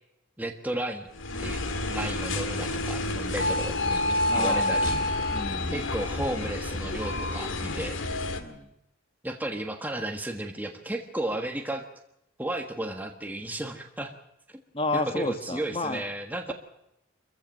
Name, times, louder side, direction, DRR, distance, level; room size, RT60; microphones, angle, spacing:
voice 1, 0.4-1.1 1.4-1.6 1.9-5.0 5.7-8.0 9.2-11.8 12.4-14.1 14.9-16.5, right 1 dB, 10° right, 4 dB, 1.4 m, -33 dB
sound 1, 1.1-8.4, left 2 dB, 80° left, 2.1 m, -29 dB
voice 2, 4.3-4.7 5.3-5.9 8.4-8.7 14.7-16.0, left 2 dB, 30° left, 7 dB, 1.7 m, -31 dB
24.5 x 15.0 x 7.6 m, 0.85 s
head